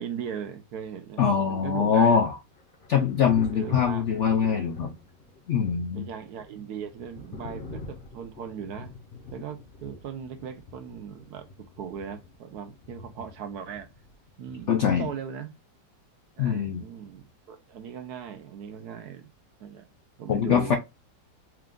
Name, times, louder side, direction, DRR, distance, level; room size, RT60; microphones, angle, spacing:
voice 1, 0.0-2.3 3.5-4.1 5.9-8.9 9.3-11.5 11.8-13.9 14.4-15.5 16.4-19.3 19.6-19.9 20.2-20.8, right 8 dB, 70° right, 1.2 m, -38 dB
voice 2, 1.2-2.3 2.9-4.9 5.5-6.1 14.7-15.1 16.4-16.8 20.3-20.8, left 7 dB, 70° left, 0.7 m, -23 dB
Thunder, 1.8-15.4 17.0-17.3, left 3 dB, 40° left, 0.9 m, -45 dB
4.6 x 2.4 x 3.6 m
omnidirectional pair, 1.9 m